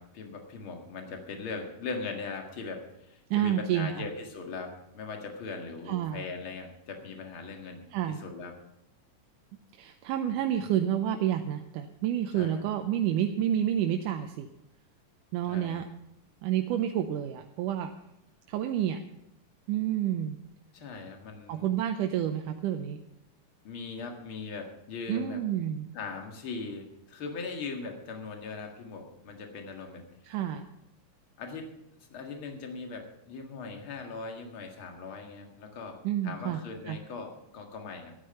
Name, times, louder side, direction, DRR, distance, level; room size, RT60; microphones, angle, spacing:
voice 1, 0.0-8.6 12.3-12.6 15.5-15.8 20.7-21.7 23.6-25.4 25.9-30.1 31.4-31.7 32.1-38.1, left 4 dB, 45° left, 3 dB, 2.4 m, -40 dB
voice 2, 3.3-4.1 5.9-6.2 7.9-8.2 9.8-14.5 15.3-15.9 16.4-17.9 18.5-19.0 19.7-20.4 21.5-23.0 25.1-25.9 30.3-30.7 36.0-36.6 36.9-37.0, right 10 dB, 85° right, 5 dB, 2.2 m, -29 dB
13.0 x 9.8 x 6.8 m, 0.88 s
omnidirectional pair, 3.7 m